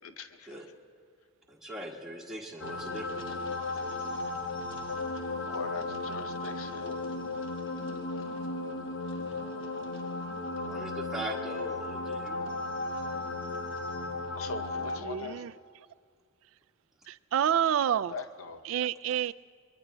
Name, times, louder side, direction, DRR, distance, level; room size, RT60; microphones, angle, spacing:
voice 1, 0.0-0.6 4.9-5.2 5.5-7.1 9.3-10.0 14.3-15.5 18.1-18.6, left 4 dB, 90° left, 0.7 m, -42 dB
voice 2, 1.5-3.4 10.6-12.5, right 1 dB, ahead, 1.6 m, -41 dB
sound 1, 2.6-15.0, left 2 dB, 65° left, 1.1 m, -35 dB
voice 3, 15.0-15.5 17.1-18.1 18.7-19.3, right 9 dB, 75° right, 0.3 m, -28 dB
24.0 x 22.5 x 2.2 m
head